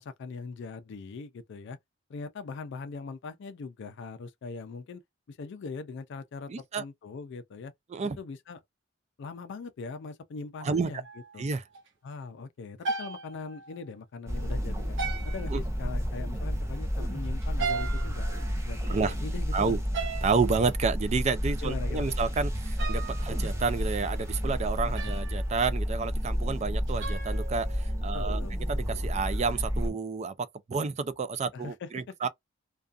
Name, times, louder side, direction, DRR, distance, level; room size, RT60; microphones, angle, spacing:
voice 1, 0.0-1.8 2.1-5.0 5.3-7.7 8.2-8.6 9.2-11.0 11.3-11.4 12.0-15.0 15.2-18.3 18.6-19.8 21.6-22.2 24.8-25.1 28.1-28.5 31.5-32.1, left 4 dB, 60° left, 0.4 m, -41 dB
voice 2, 6.5-6.8 7.9-8.2 10.6-10.9 11.4-11.6 15.5-15.6 18.9-19.1 19.5-19.8 20.2-28.4 28.7-30.3 30.7-32.3, right 4 dB, 35° right, 0.4 m, -30 dB
sound 1, 11.0-11.5 11.7-11.9 12.8-13.9 15.0-15.8 17.4-18.9 19.9-20.5 22.6-23.7 25.0-25.6 26.9-28.1, right 5 dB, 65° right, 0.8 m, -37 dB
sound 2, 14.3-29.9, equal, 15° right, 0.7 m, -31 dB
2.5 x 2.3 x 2.3 m
head